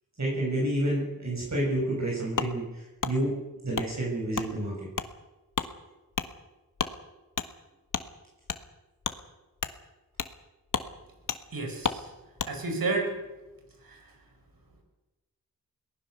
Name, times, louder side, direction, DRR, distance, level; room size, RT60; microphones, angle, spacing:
voice 1, 0.2-3.3 3.6-4.9, right 1 dB, 55° right, -3 dB, 7.3 m, -29 dB
Wood, 2.4-2.5 3.0-3.1 3.7-3.9 4.3-4.5 4.9-5.1 5.5-5.7 6.1-6.3 6.8-6.9 7.4-7.5 7.9-8.1 8.5-8.6 9.0-9.2 9.6-9.7 10.2-10.3 10.7-10.9 11.3-11.4 11.8-12.0 12.4-12.5, left 5 dB, 65° left, 1.5 m, -31 dB
voice 2, 11.5-12.1 12.4-13.1 13.8-14.0, right 3 dB, 80° right, 4 dB, 5.2 m, -31 dB
22.0 x 19.0 x 6.7 m, 1.0 s
cardioid pair, 50°, 34 cm